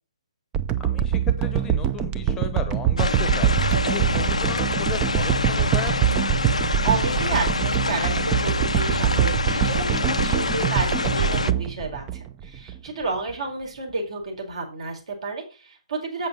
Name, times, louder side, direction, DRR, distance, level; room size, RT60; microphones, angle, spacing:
sound 1, 0.5-12.8 13.3-13.4, right 10 dB, 20° right, 0.5 m, -24 dB
voice 1, 0.8-3.6 3.9-6.3, left 6 dB, 15° left, 8 dB, 0.9 m, -35 dB
sound 2, 3.0-11.5, left 3 dB, 80° left, 0.5 m, -26 dB
voice 2, 6.8-16.3, right 3 dB, 60° right, 2 dB, 4.3 m, -31 dB
8.2 x 6.6 x 5.1 m, 0.32 s
figure-of-eight pair, 135°, 3 cm